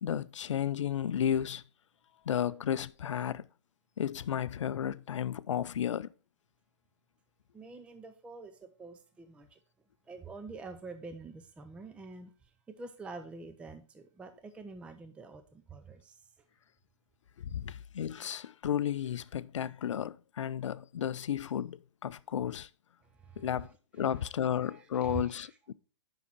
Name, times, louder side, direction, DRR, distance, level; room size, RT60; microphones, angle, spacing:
voice 1, 0.0-1.6 2.3-3.5 4.0-6.1 17.4-22.7 23.4-25.7, left 9 dB, 75° left, 0.4 m, -33 dB
voice 2, 7.5-9.6 10.1-16.3 23.0-25.5, right 4 dB, 5° right, 0.5 m, -47 dB
7.1 x 5.6 x 4.4 m
hypercardioid pair, 125°, 16 cm